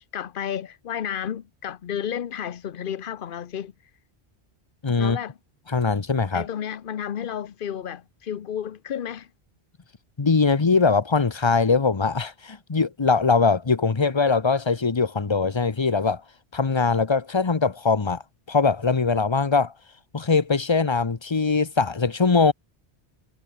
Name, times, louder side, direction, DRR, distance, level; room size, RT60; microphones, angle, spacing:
voice 1, 0.0-3.7 5.0-5.4 6.3-9.3, left 9 dB, 55° left, 0.9 m, -32 dB
voice 2, 4.8-5.2 5.7-6.5 10.2-16.2 16.5-18.2 18.5-19.7 20.1-22.5, left 4 dB, 30° left, 0.9 m, -21 dB
omnidirectional pair, 1.1 m